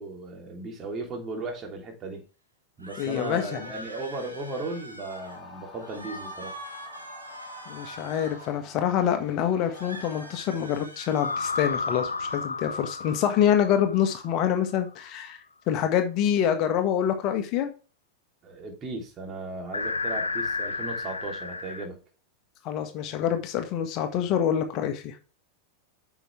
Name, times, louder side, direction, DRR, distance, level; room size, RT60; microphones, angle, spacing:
voice 1, 0.0-2.2 2.8-6.5 18.4-22.0, right 2 dB, 25° right, 2 dB, 3.1 m, -36 dB
sound 1, 2.8-5.4 5.8-8.6 9.7-12.4, right 1 dB, 85° right, 1.6 m, -43 dB
voice 2, 3.0-3.7 7.7-15.4 15.7-17.7 22.6-25.1, left 9 dB, 40° left, 6 dB, 1.6 m, -26 dB
sound 2, 5.1-10.4, left 4 dB, 20° left, 3.6 m, -49 dB
sound 3, 5.3-6.1 11.2-14.9 19.7-21.9, left 4 dB, 80° left, 0.5 m, -32 dB
8.9 x 6.2 x 3.3 m, 0.34 s
figure-of-eight pair, 90°, 0 cm